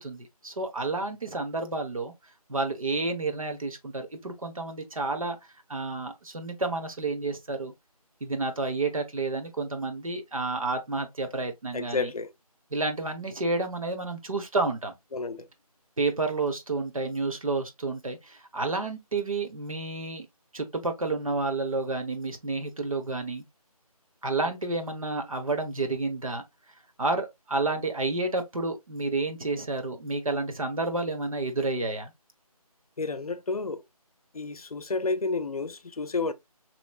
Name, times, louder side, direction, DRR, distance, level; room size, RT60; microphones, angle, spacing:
voice 1, 0.0-2.1 2.5-5.4 5.7-7.7 8.2-12.1 12.7-14.9 16.0-20.3 20.5-23.4 24.2-26.4 27.0-32.1, right 3 dB, 60° right, 1.0 m, -30 dB
voice 2, 11.7-12.3 15.1-15.5 33.0-33.8 34.3-36.3, left 3 dB, 70° left, 0.6 m, -30 dB
4.1 x 3.0 x 2.3 m
figure-of-eight pair, 175°, 20 cm